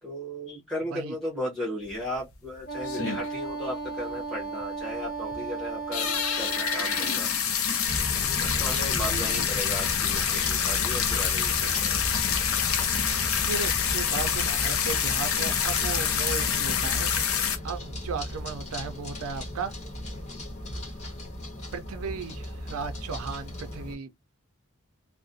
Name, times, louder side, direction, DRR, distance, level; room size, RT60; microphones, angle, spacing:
voice 1, 0.0-7.3 8.3-12.1, equal, 5° left, 0.8 m, -36 dB
sound 1, 1.9-2.0 2.3-2.4 2.8-3.5 3.9-4.1 4.6-4.7 5.2-5.4 5.8-17.6, left 8 dB, 70° left, 0.6 m, -27 dB
Wind instrument woodwind instrument, 2.6-7.3, right 4 dB, 50° left, 1.2 m, -35 dB
sound 2, 7.9-23.9, left 1 dB, 30° left, 1.2 m, -36 dB
voice 2, 9.0-9.7 13.5-17.1 17.6-19.7 21.7-24.1, right 5 dB, 75° right, 0.4 m, -36 dB
2.4 x 2.0 x 2.6 m
head